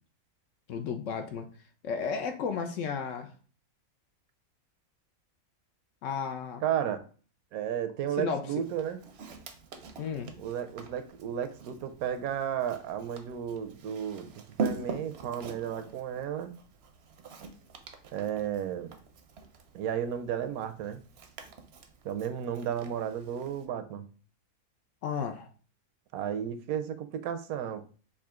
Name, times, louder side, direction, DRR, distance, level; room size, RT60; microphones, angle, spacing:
voice 1, 0.7-1.5 1.8-3.3 6.0-6.6 8.2-8.5 10.0-10.3 25.0-25.5, left 6 dB, 70° left, 6 dB, 0.8 m, -33 dB
voice 2, 6.6-7.1 7.5-9.0 10.4-16.6 18.1-18.9 19.7-21.0 22.0-24.1 26.1-27.8, right 9 dB, 80° right, 10 dB, 1.0 m, -33 dB
Walk footsteps, 8.6-23.7, right 4 dB, 60° right, 0.7 m, -43 dB
4.9 x 2.7 x 3.6 m, 0.39 s
omnidirectional pair, 1.5 m